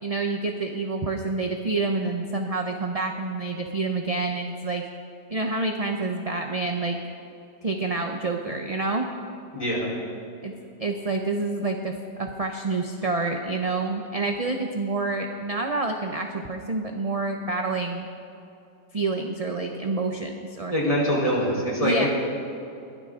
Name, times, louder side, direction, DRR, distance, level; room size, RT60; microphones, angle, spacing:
voice 1, 0.0-4.8 5.3-7.0 7.6-9.1 10.4-10.5 10.8-18.1 18.9-20.8 21.8-22.1, right 3 dB, 30° right, 3 dB, 0.8 m, -28 dB
voice 2, 9.5-9.9 20.7-22.1, equal, 25° left, -4 dB, 4.1 m, -24 dB
22.0 x 17.0 x 3.8 m, 2.8 s
omnidirectional pair, 1.5 m